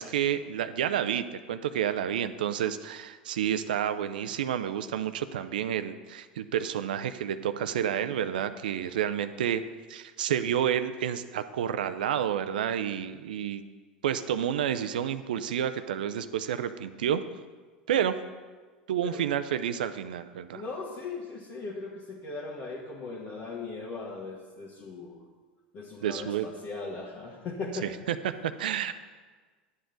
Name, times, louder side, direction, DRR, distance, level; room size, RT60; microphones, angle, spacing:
voice 1, 0.0-9.6 9.9-13.6 14.0-17.2 17.9-18.2 18.9-20.6 26.0-26.5 27.8-28.9, right 9 dB, 75° right, 11 dB, 0.5 m, -30 dB
voice 2, 20.5-25.3 25.7-27.9, left 3 dB, 45° left, -4 dB, 1.4 m, -38 dB
11.0 x 8.0 x 3.9 m, 1.4 s
hypercardioid pair, 85°, 5 cm